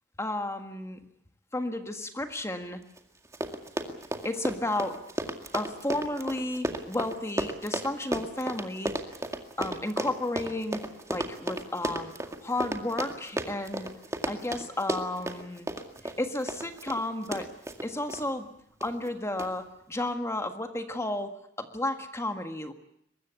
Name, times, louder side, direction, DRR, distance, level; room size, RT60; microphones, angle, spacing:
voice 1, 0.2-1.0 1.5-2.8 4.2-5.0 5.5-8.9 9.6-10.8 11.1-13.9 14.3-15.7 16.0-17.5 17.8-18.5 18.8-21.3 21.6-22.7, left 1 dB, 15° left, 6 dB, 1.7 m, -32 dB
Run, 3.0-3.1 3.3-18.2 18.8-19.1 19.4-19.5, right 1 dB, 15° right, 2.1 m, -34 dB
23.5 x 21.0 x 8.3 m, 0.72 s
head